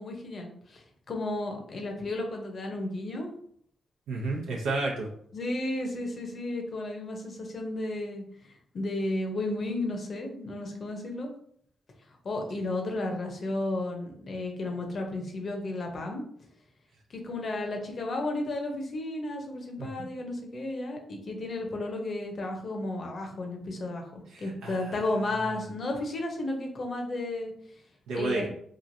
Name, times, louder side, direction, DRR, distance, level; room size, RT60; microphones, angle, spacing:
voice 1, 0.0-3.3 5.3-8.2 8.7-11.3 12.2-16.2 17.1-24.0 24.4-27.5 28.1-28.5, left 2 dB, 55° left, 2 dB, 0.7 m, -33 dB
voice 2, 4.1-5.1 19.8-19.9 24.3-25.0 28.1-28.5, right 3 dB, 85° right, -3 dB, 0.6 m, -31 dB
3.1 x 2.5 x 2.6 m, 0.64 s
supercardioid pair, 60°, 0 cm